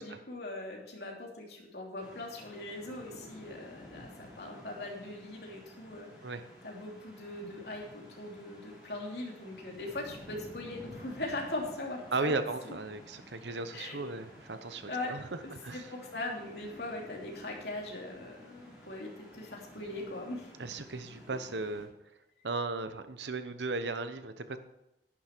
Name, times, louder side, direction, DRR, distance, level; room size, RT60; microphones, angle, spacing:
voice 1, 0.0-6.3 6.6-12.4 12.6-12.7 13.5-14.1 14.9-15.2 15.7-20.5, left 2 dB, 70° left, -1 dB, 2.9 m, -40 dB
sound 1, 2.0-21.9, left 1 dB, 5° right, 3.7 m, -53 dB
voice 2, 12.1-15.9 20.6-21.9 22.4-24.6, right 3 dB, 90° right, 10 dB, 1.0 m, -36 dB
11.0 x 10.0 x 4.5 m, 0.86 s
head